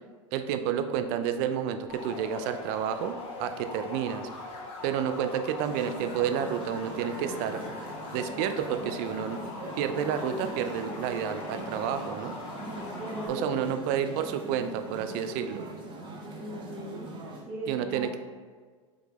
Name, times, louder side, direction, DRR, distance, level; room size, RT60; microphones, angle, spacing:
voice 1, 0.3-4.3 4.8-7.6 8.1-9.4 9.8-12.3 13.3-15.6 17.7-18.2, right 8 dB, 50° right, 9 dB, 0.4 m, -30 dB
sound 1, 1.9-13.3, left 2 dB, 35° left, 0.9 m, -41 dB
sound 2, 5.6-17.4, right 1 dB, 30° right, 0.8 m, -41 dB
voice 2, 12.9-13.7 16.3-17.1 17.4-18.2, right 1 dB, 5° right, -11 dB, 1.2 m, -39 dB
5.1 x 3.2 x 2.4 m, 1.5 s
hypercardioid pair, 85°, 17 cm